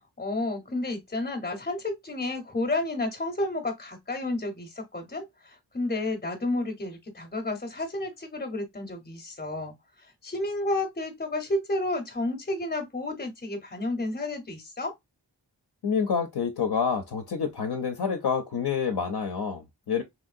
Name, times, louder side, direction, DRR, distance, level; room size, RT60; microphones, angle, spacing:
voice 1, 0.2-14.9, left 2 dB, 20° left, 0.7 m, -31 dB
voice 2, 15.8-20.0, left 6 dB, 60° left, 0.6 m, -28 dB
3.1 x 2.6 x 2.4 m
wide cardioid pair, 70°, 43 cm